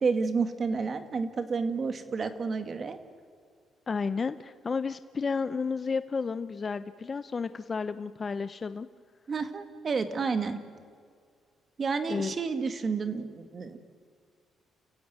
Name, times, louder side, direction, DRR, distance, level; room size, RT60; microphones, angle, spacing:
voice 1, 0.0-3.0 9.3-10.6 11.8-13.8, right 5 dB, 40° right, 9 dB, 2.2 m, -30 dB
voice 2, 3.9-8.9 12.1-12.3, left 5 dB, 35° left, 12 dB, 0.8 m, -32 dB
29.5 x 15.5 x 9.5 m, 2.1 s
cardioid pair, 90°, 0 cm